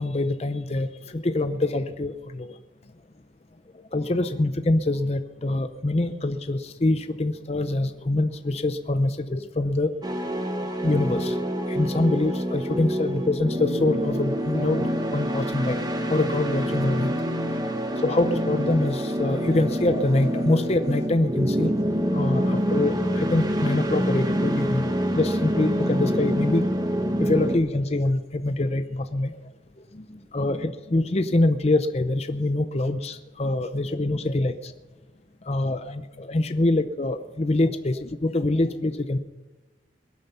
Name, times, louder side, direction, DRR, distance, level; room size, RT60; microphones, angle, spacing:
voice 1, 0.0-2.5 3.9-9.9 10.8-15.8 16.1-17.1 18.0-21.8 22.1-24.9 25.1-26.6 27.2-29.3 29.9-34.7 35.5-39.2, left 2 dB, 35° left, 9 dB, 0.6 m, -25 dB
sound 1, 10.0-27.6, equal, 20° right, 1.2 m, -26 dB
22.0 x 9.0 x 5.6 m, 1.2 s
head